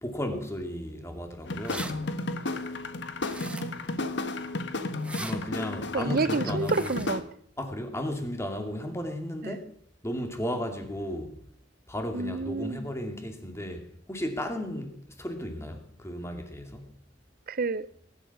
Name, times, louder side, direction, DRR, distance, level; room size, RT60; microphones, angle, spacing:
voice 1, 0.0-2.0 5.1-7.0 7.6-9.7 10.0-11.4 11.9-16.9, equal, 15° left, 2.4 m, -34 dB
sound 1, 1.5-7.2, left 2 dB, 65° left, 1.3 m, -33 dB
sound 2, 1.7-1.9 3.2-3.9 4.9-5.4 6.6-7.1, right 2 dB, 5° right, 1.4 m, -40 dB
voice 2, 3.4-4.2 5.9-7.2 9.4-9.6 12.1-12.8 17.5-17.9, right 3 dB, 50° right, 0.7 m, -30 dB
20.5 x 11.0 x 5.9 m
head